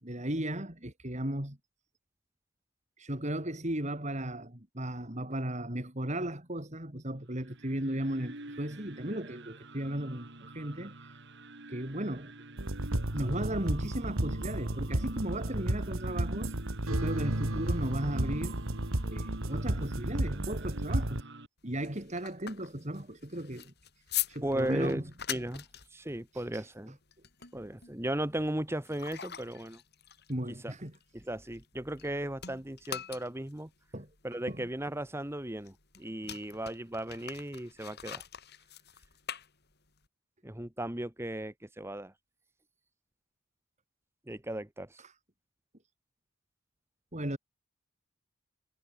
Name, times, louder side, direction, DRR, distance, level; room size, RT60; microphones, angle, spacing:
voice 1, 0.0-1.6 3.0-11.2 11.7-12.3 13.1-16.6 16.8-18.6 19.0-21.3 21.6-23.7 24.3-25.0 26.3-26.7 30.3-30.9 33.9-34.1 34.5-34.6 45.0-45.1 47.1-47.4, right 1 dB, 35° right, 3.6 m, -36 dB
sound 1, 7.2-21.5, right 2 dB, 55° right, 3.8 m, -50 dB
sound 2, 12.6-21.2, right 1 dB, 80° right, 2.7 m, -32 dB
sound 3, 21.6-32.1 32.4-40.1, left 11 dB, 50° left, 7.0 m, -43 dB
voice 2, 24.4-25.0 25.3-25.6 25.9-27.0 27.5-29.8 30.6-30.7 31.1-33.7 34.2-38.2 40.4-42.1 44.3-45.0, right 1 dB, 10° right, 1.4 m, -36 dB
head